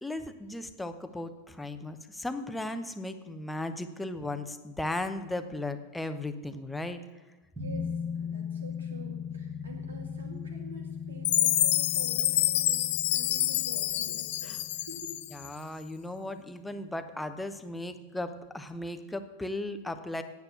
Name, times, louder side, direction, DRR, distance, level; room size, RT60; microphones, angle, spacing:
voice 1, 0.0-7.0 14.4-14.6 15.3-20.2, left 2 dB, 5° left, 8 dB, 0.7 m, -36 dB
sound 1, 7.6-16.7 17.0-17.1, left 6 dB, 10° right, 1.8 m, -39 dB
voice 2, 7.6-15.2, right 2 dB, 70° right, 1 dB, 2.2 m, -47 dB
Chime, 11.2-15.5, left 14 dB, 55° left, 0.4 m, -27 dB
9.0 x 8.3 x 6.8 m, 1.2 s
figure-of-eight pair, 90°, 0 cm